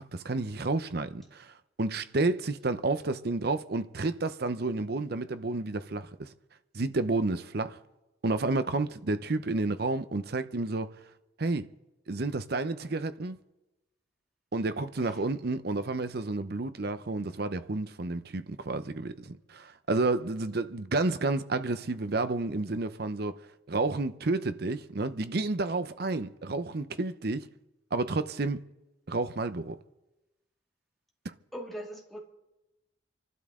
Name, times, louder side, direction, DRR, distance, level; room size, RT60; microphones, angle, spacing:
voice 1, 0.0-6.3 6.7-7.8 8.2-11.0 11.4-11.7 12.1-13.4 14.5-23.4 23.7-27.5 27.9-28.6 29.1-29.8 31.2-31.3, right 3 dB, 55° right, 0.7 m, -30 dB
voice 2, 31.5-32.2, equal, ahead, 2.2 m, -40 dB
28.0 x 12.0 x 3.7 m
head